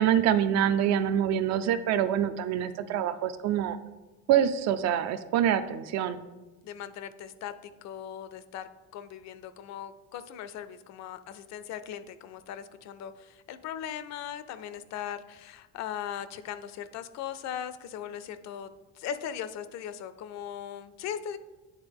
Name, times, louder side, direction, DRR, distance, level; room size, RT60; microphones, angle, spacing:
voice 1, 0.0-3.8 4.3-6.2, right 10 dB, 60° right, 11 dB, 0.5 m, -25 dB
voice 2, 6.6-18.7 18.9-21.4, left 9 dB, 65° left, 13 dB, 0.5 m, -39 dB
9.5 x 3.7 x 3.5 m, 1.1 s
cardioid pair, 135°, 30 cm